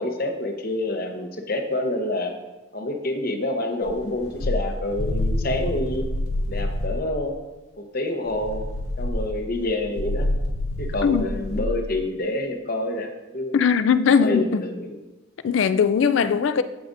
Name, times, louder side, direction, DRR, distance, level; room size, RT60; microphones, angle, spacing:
voice 1, 0.0-2.3 2.7-6.0 6.5-7.4 7.8-8.6 9.0-10.3 10.8-13.1 13.3-13.6 14.2-15.0, left 1 dB, 45° left, 0.8 m, -27 dB
sound 1, 3.9-7.1 8.3-11.8, left 1 dB, 90° left, 0.8 m, -27 dB
voice 2, 13.5-14.6 15.4-16.6, left 6 dB, 60° left, 0.3 m, -19 dB
14.5 x 4.9 x 2.6 m
head